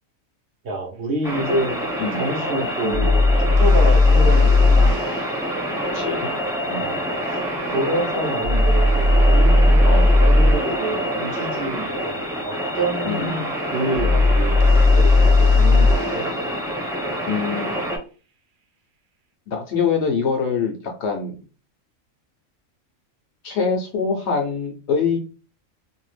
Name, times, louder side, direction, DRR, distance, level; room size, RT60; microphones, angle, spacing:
voice 1, 0.6-1.8 2.1-5.0 6.8-7.0 7.3-7.4 7.7-14.6 14.9-16.3, right 1 dB, 60° right, 0 dB, 0.9 m, -27 dB
sound 1, 1.2-18.0, equal, 5° right, 0.7 m, -27 dB
voice 2, 2.8-3.2 5.9-6.3 6.6-7.0 9.8-10.2 13.0-13.5 17.3-17.9 19.5-21.4 23.4-25.2, left 5 dB, 65° left, 2 dB, 0.8 m, -24 dB
sound 2, 2.9-5.0 8.4-10.6 13.9-16.0, left 2 dB, 80° right, 1.0 m, -15 dB
2.6 x 2.4 x 3.2 m, 0.36 s
omnidirectional pair, 1.4 m